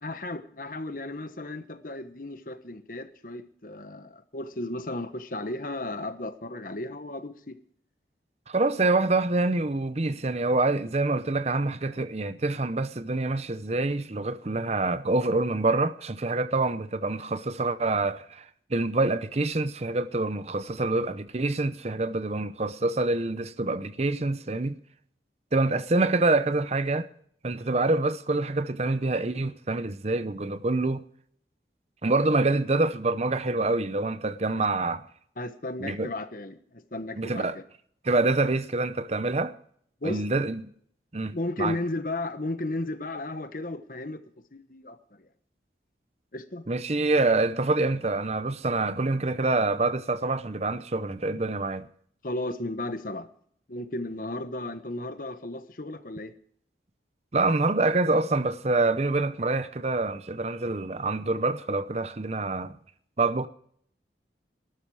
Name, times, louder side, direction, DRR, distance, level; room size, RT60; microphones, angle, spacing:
voice 1, 0.0-7.6 35.4-37.6 40.0-40.3 41.3-44.2 44.5-45.3 46.3-46.6 52.2-53.3 53.7-56.3, left 2 dB, 50° left, 1.2 m, -34 dB
voice 2, 8.5-18.4 18.7-24.8 25.5-27.1 27.4-31.0 32.0-35.0 35.8-36.1 37.2-37.6 38.0-39.5 40.0-40.6 41.1-41.8 46.7-51.9 57.3-62.8 63.2-63.5, right 2 dB, 35° right, 0.7 m, -26 dB
20.0 x 12.5 x 4.8 m
head